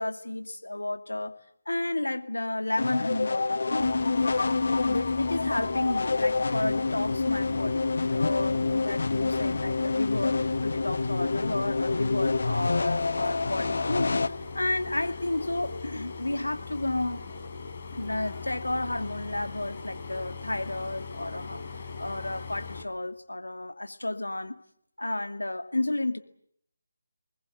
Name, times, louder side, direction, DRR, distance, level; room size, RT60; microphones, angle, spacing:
voice 1, 0.0-1.4 1.7-3.9 4.8-17.2 17.9-24.6 25.0-26.2, left 2 dB, 80° left, 7 dB, 2.3 m, -32 dB
sound 1, 2.8-14.3, left 3 dB, 60° left, 1.2 m, -27 dB
sound 2, 3.8-22.8, left 4 dB, 40° left, 4.2 m, -40 dB
28.5 x 21.0 x 8.0 m, 0.69 s
figure-of-eight pair, 155°, 0 cm